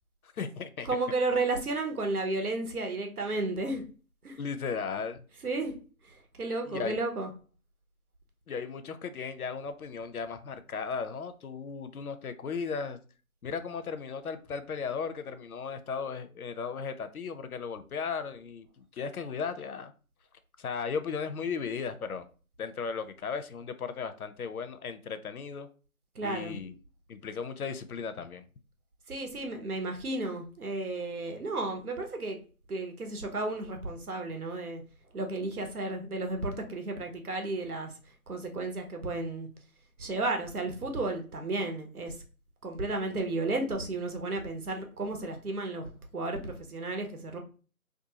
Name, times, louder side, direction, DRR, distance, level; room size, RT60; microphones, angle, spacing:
voice 1, 0.2-0.9 4.4-5.2 6.7-7.0 8.5-13.0 13.4-19.9 20.6-22.3 22.6-25.7 26.2-26.7 27.1-28.4, left 5 dB, 80° left, 10 dB, 0.6 m, -36 dB
voice 2, 0.8-3.8 4.2-4.4 5.4-5.7 6.0-7.3 26.1-26.6 29.1-32.4 32.7-34.8 35.1-37.9 38.3-39.5 40.0-42.2 42.6-47.4, right 2 dB, 90° right, 4 dB, 0.9 m, -33 dB
2.6 x 2.3 x 2.8 m, 0.37 s
figure-of-eight pair, 165°, 43 cm